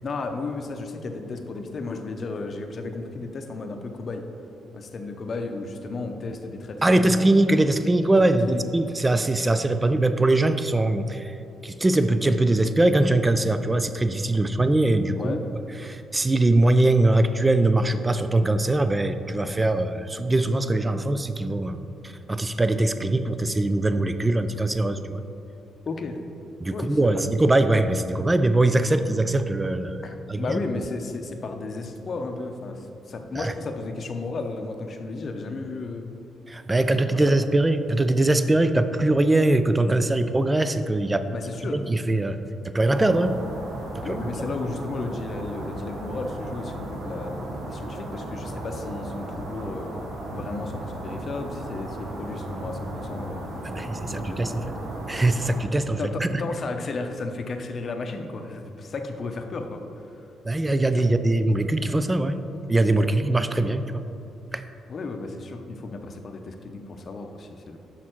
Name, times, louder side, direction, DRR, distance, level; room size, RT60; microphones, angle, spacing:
voice 1, 0.0-4.2 4.7-7.3 8.3-8.6 15.1-15.4 25.9-26.2 26.7-27.3 30.0-36.1 36.8-37.4 41.3-41.8 44.0-47.4 47.7-50.0 50.3-53.7 54.1-54.6 56.0-59.8 60.1-60.2 64.9-67.8, left 3 dB, 45° left, 5 dB, 0.7 m, -34 dB
voice 2, 6.8-11.4 11.6-15.4 15.8-25.2 26.6-30.6 33.4-33.5 36.5-41.3 41.7-42.4 42.6-43.4 43.9-44.2 53.6-54.6 55.1-56.3 60.4-62.4 62.7-64.1 64.5-64.6, right 2 dB, 15° right, 10 dB, 0.4 m, -22 dB
sound 1, 42.8-55.6, right 1 dB, 70° right, 1.1 m, -35 dB
6.4 x 5.8 x 4.4 m, 2.7 s
cardioid pair, 90°, 0 cm